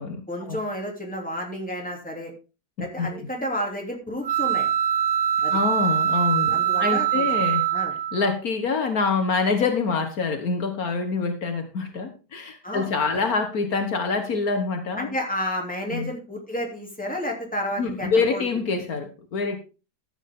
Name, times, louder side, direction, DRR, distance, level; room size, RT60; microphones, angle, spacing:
voice 1, 0.3-2.3 2.8-4.7 5.4-5.6 6.5-7.3 7.7-7.9 12.6-12.9 15.0-18.4, equal, 5° left, 0 dB, 2.9 m, -31 dB
voice 2, 2.8-3.2 5.5-7.7 8.1-15.1 15.9-16.1 17.8-19.6, left 4 dB, 65° left, 6 dB, 1.7 m, -25 dB
sound 1, 4.2-8.3, right 10 dB, 30° right, 1.2 m, -23 dB
13.5 x 8.2 x 3.7 m, 0.32 s
omnidirectional pair, 1.7 m